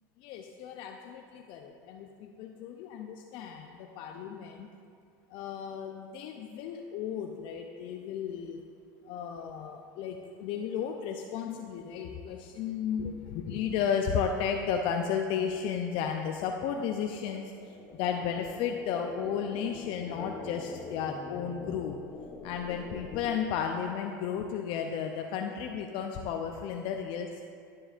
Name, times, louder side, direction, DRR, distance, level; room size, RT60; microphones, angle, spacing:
voice 1, 0.2-4.7 5.3-8.6 9.1-22.0 22.4-27.4, left 7 dB, 55° left, 3 dB, 0.5 m, -34 dB
sound 1, 16.5-24.4, left 4 dB, 30° left, 0.8 m, -45 dB
12.0 x 7.5 x 2.5 m, 2.4 s
hypercardioid pair, 100°, 11 cm